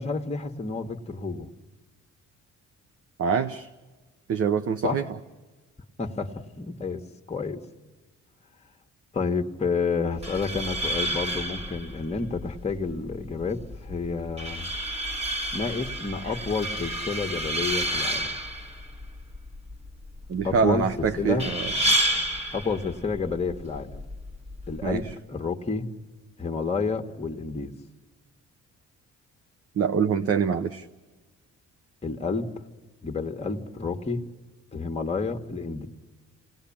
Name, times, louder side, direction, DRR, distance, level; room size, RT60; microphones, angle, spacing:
voice 1, 0.0-1.5 4.8-5.0 6.0-7.0 7.3-7.6 9.1-14.7 15.5-18.3 20.4-21.5 22.5-24.0 24.7-25.9 26.4-27.7 32.0-32.7 33.0-34.2 34.7-35.9, left 4 dB, 20° left, 4 dB, 1.5 m, -30 dB
voice 2, 3.2-3.7 4.3-5.0 20.3-21.9 24.8-25.0 29.8-30.9, right 6 dB, 50° right, 9 dB, 0.9 m, -25 dB
sound 1, 10.1-25.1, right 1 dB, 20° right, 2.0 m, -31 dB
27.0 x 19.0 x 8.7 m, 1.3 s
cardioid pair, 90°, 30 cm